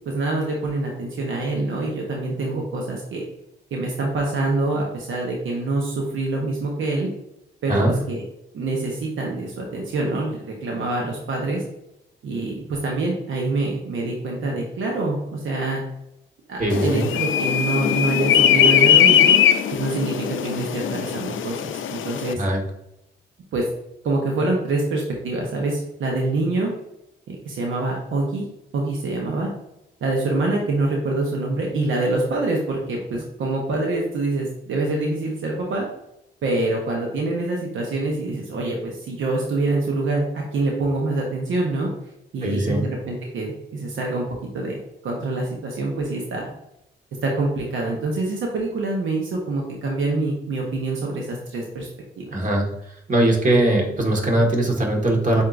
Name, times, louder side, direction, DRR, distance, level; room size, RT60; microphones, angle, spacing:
voice 1, 0.1-3.2 3.7-7.1 7.6-8.2 8.5-11.6 12.2-15.8 16.5-19.4 19.7-22.4 23.5-23.7 24.0-26.7 27.3-28.4 28.7-29.5 30.0-35.8 36.4-41.9 42.3-44.2 44.5-44.7 45.0-46.5 47.2-51.9 52.2-52.4, right 2 dB, 75° right, -1 dB, 1.0 m, -25 dB
voice 2, 16.6-17.1 22.4-22.6 42.4-42.9 52.3-52.7 53.1-55.4, right 1 dB, 40° right, 0 dB, 1.6 m, -20 dB
sound 1, 16.7-22.3, left 9 dB, 70° left, 0.4 m, -19 dB
7.5 x 2.8 x 2.6 m, 0.84 s
supercardioid pair, 60°, 21 cm